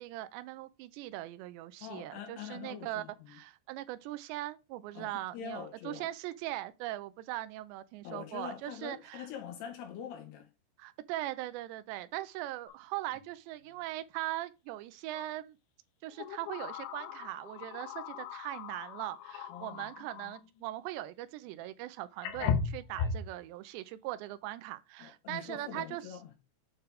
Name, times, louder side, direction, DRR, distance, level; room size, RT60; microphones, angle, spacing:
voice 1, 0.0-9.3 10.8-15.6 16.0-26.0, right 15 dB, 85° right, 2.6 m, -40 dB
voice 2, 1.8-3.4 4.9-6.1 8.0-10.5 19.5-19.9 25.0-26.4, left 8 dB, 70° left, 3.2 m, -44 dB
sound 1, 12.7-12.8 13.1-13.3 15.1-15.3 16.2-20.5 21.7-21.8 22.2-23.3, left 6 dB, 85° left, 3.1 m, -37 dB
8.9 x 4.3 x 3.4 m
omnidirectional pair, 5.4 m